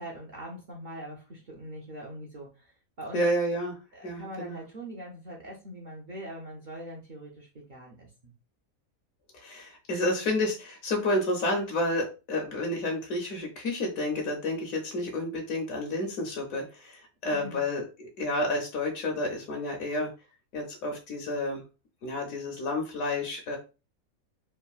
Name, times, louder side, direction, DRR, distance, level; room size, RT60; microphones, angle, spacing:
voice 1, 0.0-2.7 3.0-3.2 3.9-8.3 17.3-17.7, equal, 60° right, -3 dB, 0.5 m, -42 dB
voice 2, 3.1-3.8 4.0-4.6 9.3-20.1 20.5-21.6 22.0-23.6, left 1 dB, 75° left, 2 dB, 1.1 m, -30 dB
3.3 x 2.2 x 2.3 m, 0.31 s
omnidirectional pair, 1.5 m